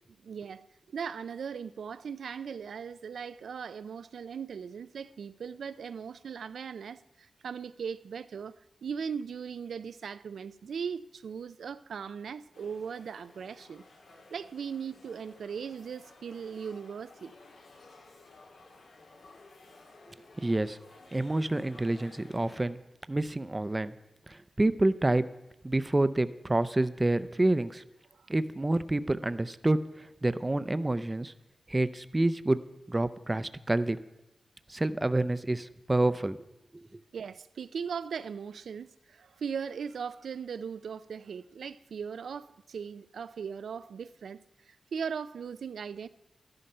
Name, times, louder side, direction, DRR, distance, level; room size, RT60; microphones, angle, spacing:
voice 1, 0.2-13.8 14.3-17.4 28.1-28.3 37.1-46.1, right 6 dB, 90° right, 0.4 m, -39 dB
sound 1, 12.5-22.6, left 3 dB, 90° left, 2.5 m, -55 dB
voice 2, 20.4-20.8 21.1-22.8 23.1-23.9 24.3-25.2 25.6-27.8 28.3-31.3 31.7-32.6 32.9-34.0 34.7-36.4 36.7-37.0, right 2 dB, 20° right, 0.5 m, -28 dB
12.5 x 11.5 x 5.5 m
wide cardioid pair, 135°, 0 cm